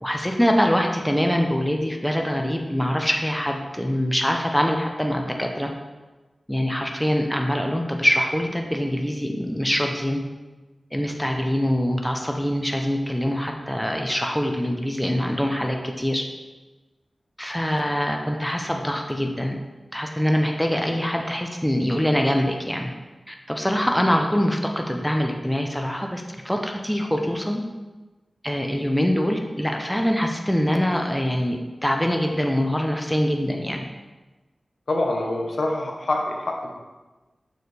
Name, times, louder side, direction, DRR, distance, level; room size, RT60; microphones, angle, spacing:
voice 1, 0.0-5.7 6.5-10.2 10.9-16.2 17.4-19.6 19.9-22.9 23.3-27.6 28.4-33.8, equal, 5° left, 2 dB, 0.7 m, -24 dB
voice 2, 34.9-36.8, left 2 dB, 75° left, 0 dB, 1.1 m, -25 dB
6.8 x 6.4 x 3.4 m, 1.2 s
wide cardioid pair, 85°, 0 cm